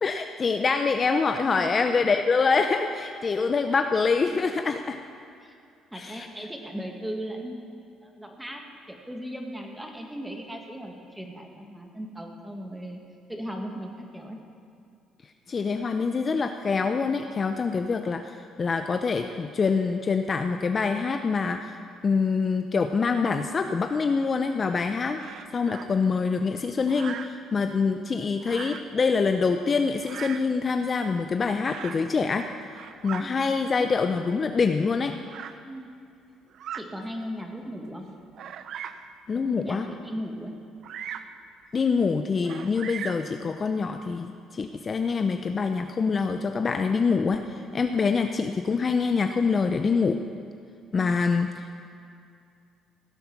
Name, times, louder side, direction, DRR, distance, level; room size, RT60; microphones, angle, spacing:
voice 1, 0.0-5.0 5.9-6.3 15.5-21.8 22.0-32.5 33.0-35.1 39.3-39.9 41.7-50.2 50.9-51.8, left 5 dB, 35° left, 7 dB, 0.5 m, -25 dB
voice 2, 1.6-2.0 5.4-5.5 5.9-7.7 8.0-8.6 8.9-13.0 13.3-14.4 33.2-33.4 35.6-35.9 36.7-38.0 39.3-40.5 47.5-47.8, equal, 5° right, 2 dB, 1.7 m, -37 dB
Bird vocalization bird call bird song, 25.2-25.9 26.9-27.4 28.4-28.9 30.0-30.5 31.6-32.1 32.6-33.3 34.1-34.2 35.3-35.6 36.5-36.9 37.5-37.6 38.3-39.1 40.8-41.4 42.4-43.3, right 8 dB, 60° right, 0.6 m, -39 dB
17.0 x 7.8 x 5.9 m, 2.5 s
cardioid pair, 110°, 0 cm